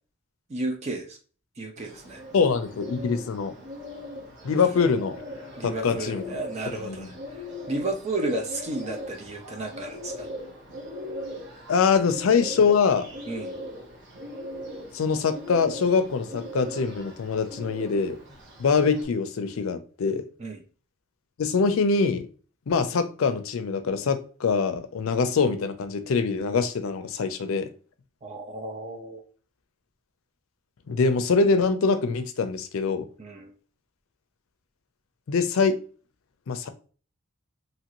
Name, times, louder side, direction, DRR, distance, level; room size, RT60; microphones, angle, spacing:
voice 1, 0.5-1.2 1.6-2.2 5.5-7.2 7.7-10.3 13.3-13.5 20.4-20.6 28.2-29.2 33.2-33.5, right 2 dB, 30° right, 0.4 m, -32 dB
Bird, 1.8-19.0, left 1 dB, 55° right, 0.9 m, -40 dB
voice 2, 2.3-3.5 4.4-5.2 5.6-6.2 6.7-7.1 11.7-13.1 14.9-18.2 18.6-20.2 21.4-22.3 22.7-27.7 30.9-33.1 35.3-35.8 36.5-36.7, left 5 dB, 85° left, 0.4 m, -24 dB
2.8 x 2.5 x 2.9 m
head